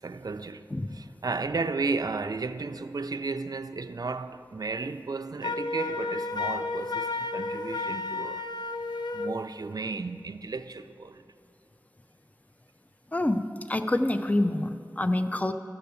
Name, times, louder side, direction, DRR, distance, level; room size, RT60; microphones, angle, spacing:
voice 1, 0.0-0.7 0.9-8.5 9.1-11.2, right 3 dB, 60° right, 0.3 m, -33 dB
Wind instrument woodwind instrument, 5.4-9.4, left 3 dB, 75° left, 0.5 m, -32 dB
voice 2, 13.1-15.5, left 1 dB, 20° left, 0.4 m, -27 dB
12.5 x 6.8 x 6.8 m
wide cardioid pair, 45°, 7 cm